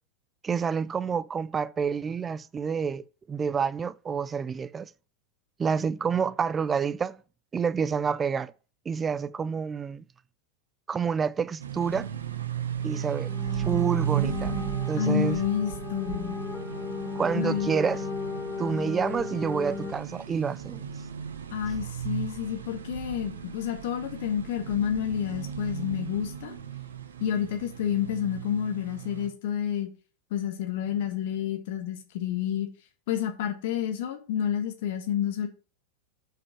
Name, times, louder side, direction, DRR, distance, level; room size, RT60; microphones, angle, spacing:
voice 1, 0.4-4.9 5.6-7.2 7.5-8.5 8.9-10.0 10.9-12.1 12.8-14.5 14.9-15.4 17.2-18.0 18.6-20.8, right 6 dB, 20° right, 0.4 m, -28 dB
sound 1, 11.6-29.3, right 9 dB, 70° right, 0.9 m, -35 dB
sound 2, 12.8-19.9, left 5 dB, 15° left, 1.7 m, -36 dB
voice 2, 15.0-16.4 17.3-17.7 21.5-26.6 27.2-29.9 30.3-32.7 33.1-35.5, left 9 dB, 55° left, 1.4 m, -29 dB
6.5 x 5.2 x 6.0 m
figure-of-eight pair, 90°, 0 cm